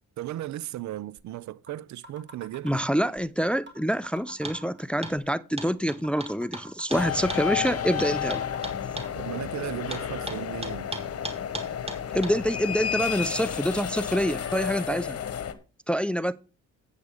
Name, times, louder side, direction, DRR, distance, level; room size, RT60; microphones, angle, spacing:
voice 1, 0.2-2.8 9.1-10.9, right 14 dB, 70° right, 0.6 m, -36 dB
sound 1, 1.2-1.3 1.7-1.8 2.0-3.2 3.7-3.8 4.0-5.2 5.7-5.8 6.0-7.2 7.7-7.8 8.0-9.1, right 1 dB, 40° right, 2.7 m, -46 dB
voice 2, 2.6-8.5 12.1-15.2 15.9-16.3, equal, 5° left, 0.4 m, -26 dB
sound 2, 4.4-4.6 5.0-5.2 5.6-9.1 9.9-12.4, right 2 dB, 20° right, 1.6 m, -37 dB
sound 3, 6.9-15.5, left 9 dB, 55° left, 1.2 m, -31 dB
8.2 x 8.1 x 5.0 m
cardioid pair, 90°, 30 cm